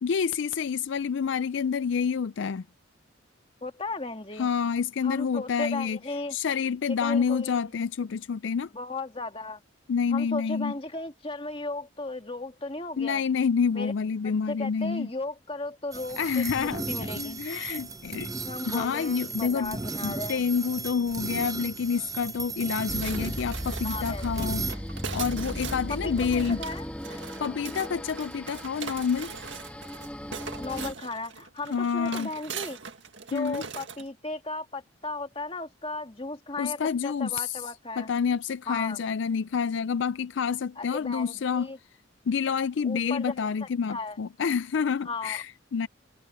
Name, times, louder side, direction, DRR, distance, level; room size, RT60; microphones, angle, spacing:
voice 1, 0.0-2.6 4.4-6.0 6.3-8.7 9.9-10.7 13.0-15.1 16.2-16.8 17.2-18.3 18.7-19.8 20.0-24.8 25.1-26.6 27.4-29.3 31.7-32.3 33.3-33.6 36.6-37.6 38.0-41.7 42.3-45.9, left 6 dB, 65° left, 0.4 m, -28 dB
voice 2, 3.6-4.5 5.0-6.4 7.0-7.6 8.7-9.6 10.1-13.2 13.7-13.9 14.5-17.4 18.4-20.4 23.8-24.5 25.9-26.9 30.6-32.8 33.3-38.1 38.7-39.0 40.8-41.8 42.8-44.2 45.1-45.4, left 2 dB, 25° left, 1.9 m, -36 dB
sound 1, 15.9-24.8, right 3 dB, 15° right, 0.7 m, -36 dB
sound 2, 22.9-30.9, equal, 5° left, 1.4 m, -37 dB
sound 3, 23.0-34.1, right 6 dB, 65° right, 1.9 m, -41 dB
head